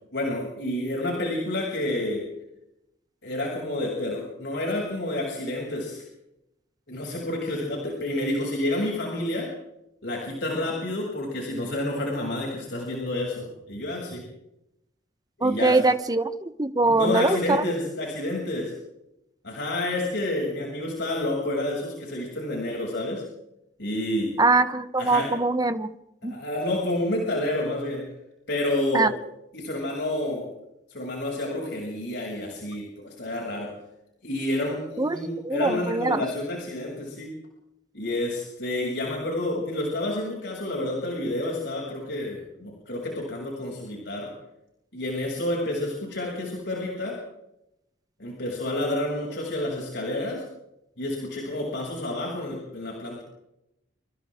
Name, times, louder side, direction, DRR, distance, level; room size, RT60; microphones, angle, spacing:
voice 1, 0.1-2.2 3.2-6.0 6.9-9.5 10.0-14.2 15.4-15.8 16.8-18.7 19.4-23.2 23.8-24.3 25.0-25.3 26.3-28.0 28.5-29.1 29.5-30.4 30.9-33.7 34.2-37.3 37.9-44.3 44.9-47.2 48.2-50.4 51.0-53.2, left 1 dB, 70° left, -2 dB, 7.1 m, -29 dB
voice 2, 15.4-17.6 24.4-25.9 26.2-26.4 28.9-29.1 35.0-35.2 35.4-36.3, right 3 dB, 20° right, 10 dB, 1.2 m, -22 dB
28.0 x 27.0 x 3.8 m, 0.85 s
head